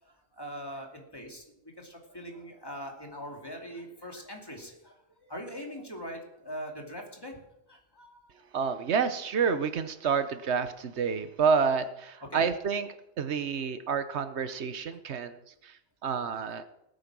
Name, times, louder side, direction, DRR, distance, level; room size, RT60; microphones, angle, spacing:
voice 1, 0.0-8.5 12.3-12.5 16.4-16.6, equal, 20° left, 1 dB, 2.6 m, -42 dB
voice 2, 8.5-12.9 13.2-15.4 15.6-15.7 16.0-16.6, right 6 dB, 85° right, 11 dB, 1.2 m, -29 dB
18.5 x 8.4 x 6.0 m, 0.83 s
omnidirectional pair, 1.1 m